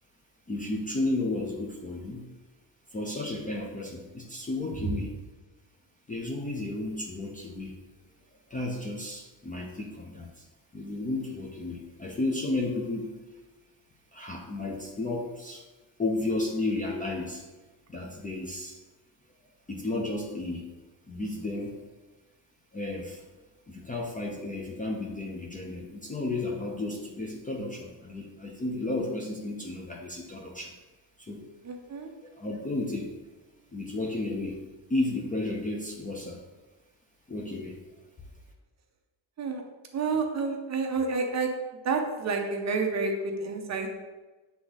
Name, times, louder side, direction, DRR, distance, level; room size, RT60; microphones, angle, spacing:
voice 1, 0.5-2.3 2.9-5.2 6.1-7.8 8.5-10.5 10.7-13.1 14.1-15.6 16.0-17.4 17.9-18.8 19.7-20.7 21.1-21.8 22.7-23.2 23.7-30.7 31.2-31.4 32.4-33.1 33.7-34.6 34.9-36.4 37.3-37.8, left 2 dB, 20° left, -1 dB, 0.5 m, -33 dB
voice 2, 31.6-32.1 39.4-39.6 39.9-41.5 41.8-43.9, right 4 dB, 35° right, 3 dB, 0.7 m, -29 dB
7.7 x 3.5 x 4.0 m, 1.2 s
cardioid pair, 175°, 46 cm